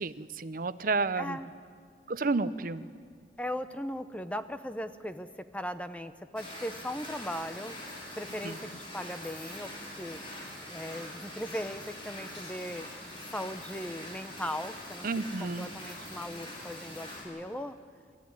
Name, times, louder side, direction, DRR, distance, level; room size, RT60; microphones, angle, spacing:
voice 1, 0.0-1.4 2.1-2.8 8.4-8.5 15.0-15.7, right 3 dB, 50° right, 13 dB, 0.7 m, -31 dB
voice 2, 1.2-1.5 3.4-7.8 8.2-10.2 10.7-12.9 13.3-15.1 15.4-17.8, equal, 10° left, 10 dB, 0.7 m, -38 dB
sound 1, 6.4-17.2, left 1 dB, 30° left, 5.5 m, -43 dB
26.5 x 14.0 x 9.6 m, 2.1 s
head